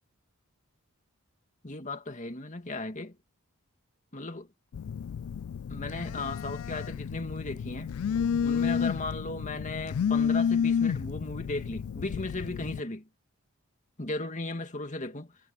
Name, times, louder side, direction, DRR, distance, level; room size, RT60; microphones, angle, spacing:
voice 1, 1.6-3.2 4.1-4.5 5.7-8.0 8.4-13.1 14.0-15.3, left 2 dB, 35° left, 2.0 m, -36 dB
Telephone, 4.7-12.8, left 7 dB, 70° left, 0.3 m, -30 dB
head